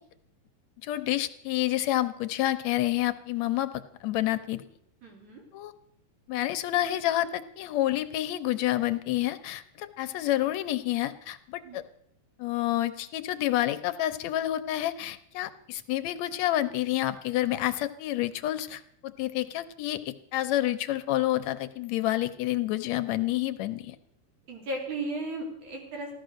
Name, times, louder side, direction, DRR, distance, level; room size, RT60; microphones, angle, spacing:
voice 1, 0.8-3.7 4.0-4.6 5.5-5.7 6.3-11.8 12.4-18.8 19.2-24.0, left 14 dB, 75° left, 11 dB, 1.8 m, -28 dB
voice 2, 5.0-5.4 11.6-11.8 24.5-26.1, right 2 dB, 70° right, 0 dB, 4.6 m, -35 dB
15.5 x 12.0 x 6.4 m, 0.70 s
omnidirectional pair, 3.5 m